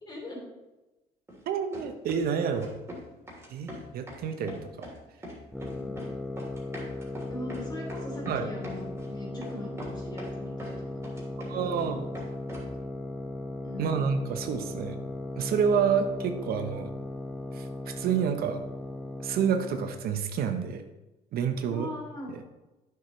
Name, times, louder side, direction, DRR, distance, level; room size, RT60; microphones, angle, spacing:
voice 1, 0.0-0.4 7.3-10.8 11.1-11.3 11.6-11.9 13.6-14.0 21.6-22.3, left 1 dB, 25° left, -1 dB, 2.9 m, -41 dB
sound 1, 1.3-1.4 1.7-2.3 2.6-3.0 3.3-4.2 4.5-5.0 5.2-6.1 6.4-9.1 9.4-9.5 9.8-10.7 11.0-11.9 12.1-12.7, equal, 15° right, 3.0 m, -42 dB
voice 2, 1.5-2.7 3.5-4.9 8.3-8.4 11.5-12.0 13.8-15.0 15.4-16.9 17.5-18.6 19.2-20.8 21.3-21.9, right 7 dB, 65° right, 7 dB, 0.8 m, -29 dB
sound 2, 5.5-20.1, left 1 dB, 5° left, 0.4 m, -37 dB
9.5 x 6.8 x 3.1 m, 1.0 s
cardioid pair, 110°, 17 cm